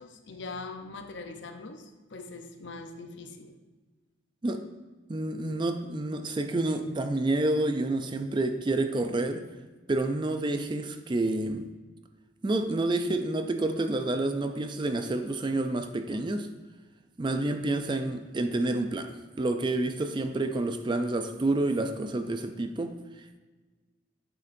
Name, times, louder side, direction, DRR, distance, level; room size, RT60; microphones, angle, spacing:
voice 1, 0.0-3.6, left 3 dB, 65° left, 6 dB, 0.7 m, -42 dB
voice 2, 5.1-9.4 9.9-11.7 12.4-16.5 17.2-19.1 19.4-23.0, right 2 dB, 25° right, 7 dB, 0.4 m, -29 dB
8.7 x 6.5 x 2.6 m, 1.3 s
head